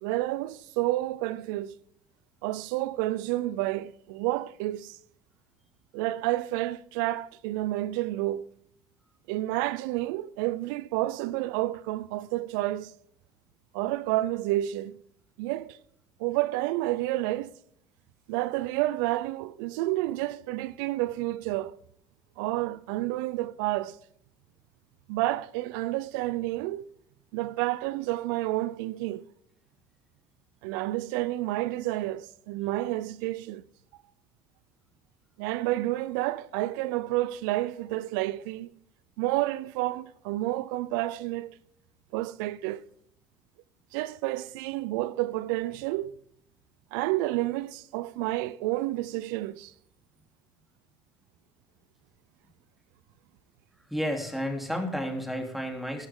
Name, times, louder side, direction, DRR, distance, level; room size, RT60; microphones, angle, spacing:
voice 1, 0.0-1.8 2.4-5.0 5.9-8.5 9.3-12.9 13.7-15.0 15.4-15.8 16.2-17.5 18.3-21.8 22.4-24.0 25.1-26.9 27.3-29.2 30.6-33.6 35.4-38.7 39.2-41.6 42.1-42.8 43.9-46.1 46.9-49.7, right 16 dB, 90° right, 0.5 m, -30 dB
voice 2, 53.9-56.1, equal, ahead, 3.2 m, -31 dB
14.0 x 12.0 x 3.7 m
supercardioid pair, 90°, 10 cm